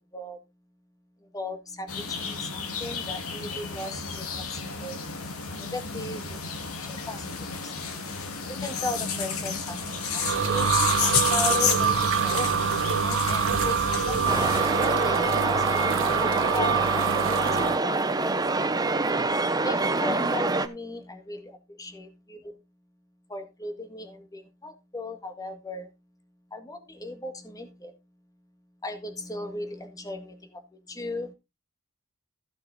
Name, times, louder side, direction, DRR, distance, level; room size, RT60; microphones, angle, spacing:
voice 1, 1.3-5.0 5.6-6.5 6.8-7.9 8.6-10.8 11.3-12.5 13.0-15.9 16.5-18.0 19.6-22.5 23.3-25.9 26.5-27.9 28.8-30.6 30.9-31.3, left 1 dB, 15° left, 7 dB, 1.8 m, -37 dB
sound 1, 1.9-14.6, left 6 dB, 75° left, 2.4 m, -31 dB
cement mixer full of water, 9.8-17.8, right 7 dB, 60° right, 0.7 m, -26 dB
sound 2, 14.3-20.7, right 3 dB, 20° right, 0.9 m, -26 dB
15.0 x 6.5 x 4.1 m, 0.25 s
head